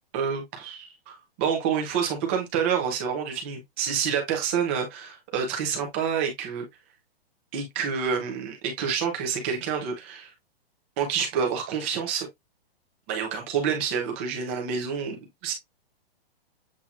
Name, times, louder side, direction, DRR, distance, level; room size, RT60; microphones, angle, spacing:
voice 1, 0.1-6.6 7.5-10.3 11.0-12.3 13.1-15.5, right 7 dB, 15° right, 0.6 m, -28 dB
7.3 x 2.7 x 2.4 m
hypercardioid pair, 175°, 30 cm